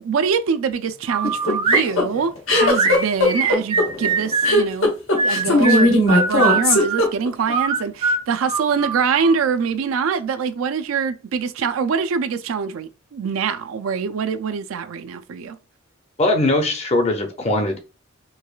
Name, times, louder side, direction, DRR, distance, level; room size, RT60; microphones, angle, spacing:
voice 1, 0.0-15.6, right 6 dB, 85° right, 0.4 m, -24 dB
sound 1, 1.1-1.9 2.5-4.6 5.2-7.0 7.5-9.4, right 4 dB, 25° right, 0.5 m, -22 dB
sound 2, 1.2-7.5, left 2 dB, 90° left, 1.0 m, -17 dB
voice 2, 16.2-17.8, left 2 dB, 30° left, 0.6 m, -20 dB
4.6 x 2.3 x 2.3 m
head